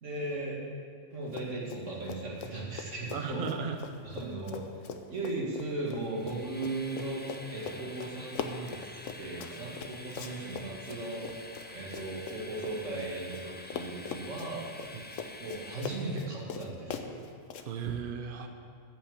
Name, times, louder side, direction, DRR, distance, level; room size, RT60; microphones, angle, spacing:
voice 1, 0.0-0.6 1.1-3.4 4.0-4.7 5.1-7.2 7.5-8.9 9.2-11.2 11.7-14.7 15.4-17.2, right 2 dB, 70° right, -4 dB, 2.5 m, -37 dB
Run, 1.3-1.8 2.1-13.4 13.7-17.7, left 6 dB, 75° left, 1.1 m, -41 dB
voice 2, 3.1-3.8 14.9-15.1 17.6-18.5, right 6 dB, 50° right, 5 dB, 0.8 m, -35 dB
Train, 6.0-16.4, left 1 dB, 15° left, 0.4 m, -48 dB
8.7 x 7.3 x 8.7 m, 2.3 s
omnidirectional pair, 1.3 m